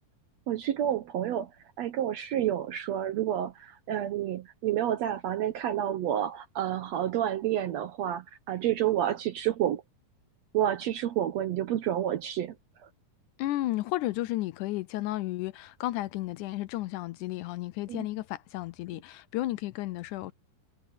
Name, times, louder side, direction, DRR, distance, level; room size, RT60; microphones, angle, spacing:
voice 1, 0.5-1.5 1.8-9.8 10.5-12.5 17.9-18.0, right 11 dB, 70° right, 1.7 m, -29 dB
voice 2, 13.4-20.3, left 16 dB, 80° left, 2.0 m, -33 dB
omnidirectional pair, 3.8 m